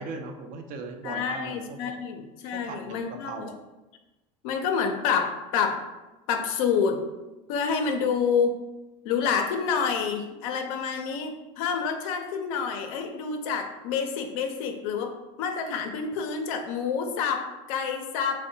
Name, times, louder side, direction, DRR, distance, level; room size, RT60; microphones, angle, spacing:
voice 1, 0.0-1.8 2.5-3.5, right 4 dB, 50° right, 5 dB, 0.4 m, -38 dB
voice 2, 1.0-3.5 4.4-5.8 6.3-7.0 7.5-8.6 9.0-18.5, left 6 dB, 75° left, 5 dB, 0.4 m, -28 dB
2.6 x 2.0 x 2.7 m, 1.1 s
supercardioid pair, 95°, 18 cm